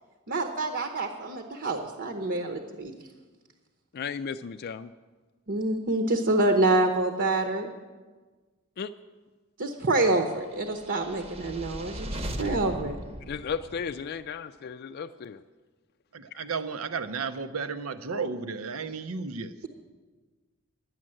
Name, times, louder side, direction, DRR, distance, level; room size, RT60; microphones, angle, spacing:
voice 1, 0.3-2.9 5.5-7.7 9.6-13.0, right 2 dB, 60° right, 1.0 m, -27 dB
voice 2, 3.9-4.9 8.8-8.9 13.3-15.4 16.3-16.4, left 6 dB, 50° left, 0.4 m, -35 dB
sound 1, 10.7-14.1, right 1 dB, 30° right, 0.9 m, -38 dB
voice 3, 16.1-19.5, right 5 dB, 90° right, 0.8 m, -33 dB
11.0 x 9.7 x 7.7 m
head